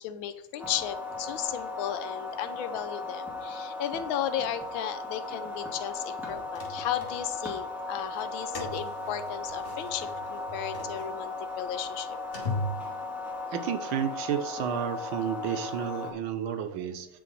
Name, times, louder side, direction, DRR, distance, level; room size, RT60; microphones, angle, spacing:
voice 1, 0.0-12.2, left 10 dB, 85° left, 11 dB, 1.5 m, -35 dB
sound 1, 0.6-16.1, left 3 dB, ahead, 2.1 m, -37 dB
sound 2, 6.2-7.6 8.1-13.4, left 1 dB, 35° left, 2.3 m, -39 dB
voice 2, 13.5-17.1, right 8 dB, 90° right, 9 dB, 1.6 m, -31 dB
9.1 x 6.6 x 4.1 m, 0.81 s
omnidirectional pair, 2.2 m